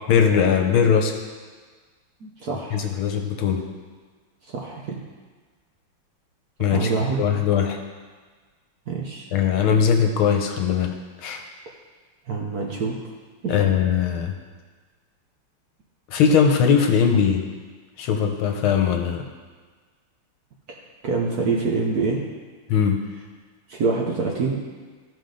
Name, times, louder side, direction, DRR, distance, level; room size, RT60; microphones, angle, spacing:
voice 1, 0.1-1.2 2.7-3.6 6.6-6.9 7.2-7.8 9.3-11.4 13.5-14.4 16.1-17.4 18.0-19.3 22.7-23.0, left 7 dB, 75° left, 4 dB, 1.6 m, -20 dB
voice 2, 2.2-2.8 4.5-5.0 6.7-7.2 8.9-9.3 12.3-12.9 13.4-13.5 20.7-20.8 21.0-22.2 23.7-24.6, right 4 dB, 60° right, -1 dB, 1.1 m, -25 dB
14.5 x 5.2 x 3.9 m, 1.5 s
omnidirectional pair, 2.4 m